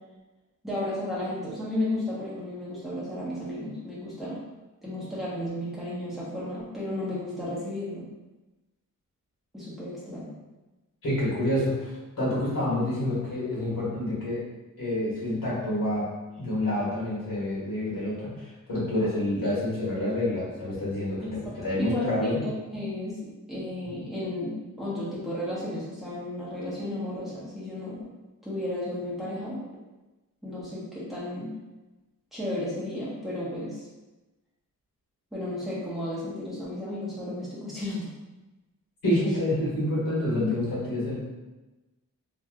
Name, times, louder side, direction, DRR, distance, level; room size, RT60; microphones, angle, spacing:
voice 1, 0.6-4.4 4.8-8.0 9.5-10.3 21.2-23.2 23.5-28.1 28.4-29.6 30.4-31.5 32.3-33.9 35.3-38.1 40.3-40.5, left 1 dB, ahead, -9 dB, 1.0 m, -33 dB
voice 2, 11.0-14.4 14.8-16.1 16.4-21.2 21.6-22.4 39.0-41.2, left 1 dB, 85° left, -8 dB, 1.5 m, -28 dB
3.1 x 2.7 x 2.3 m, 1.1 s
wide cardioid pair, 165°, 33 cm